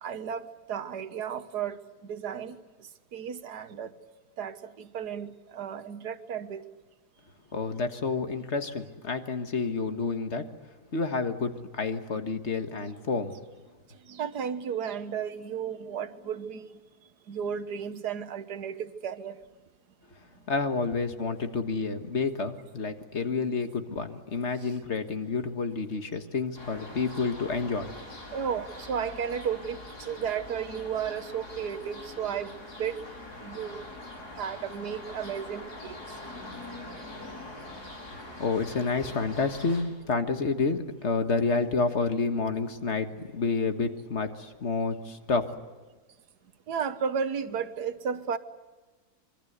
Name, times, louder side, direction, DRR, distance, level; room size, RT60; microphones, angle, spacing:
voice 1, 0.0-2.6 3.1-3.9 4.4-6.6 14.1-16.7 17.3-19.4 28.3-32.5 32.8-33.0 33.4-33.9 34.4-36.0 46.7-48.4, right 7 dB, 85° right, 11 dB, 1.7 m, -33 dB
voice 2, 7.5-10.5 10.9-13.4 20.5-27.9 38.1-45.5, left 4 dB, 45° left, 7 dB, 1.8 m, -29 dB
sound 1, 26.6-39.8, left 2 dB, 85° left, 5.9 m, -43 dB
25.0 x 23.5 x 8.1 m, 1.2 s
omnidirectional pair, 1.7 m